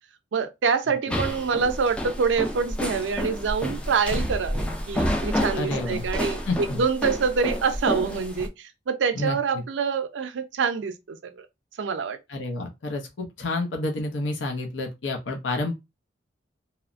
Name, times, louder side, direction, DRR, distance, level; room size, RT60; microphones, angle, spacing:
voice 1, 0.3-11.5 11.8-12.2, right 5 dB, 80° right, 0.4 m, -26 dB
sound 1, 1.1-8.5, equal, 5° left, 0.4 m, -29 dB
voice 2, 5.5-6.0 6.5-6.8 9.1-9.6 12.3-15.7, left 2 dB, 85° left, 0.6 m, -29 dB
3.0 x 2.0 x 2.4 m
head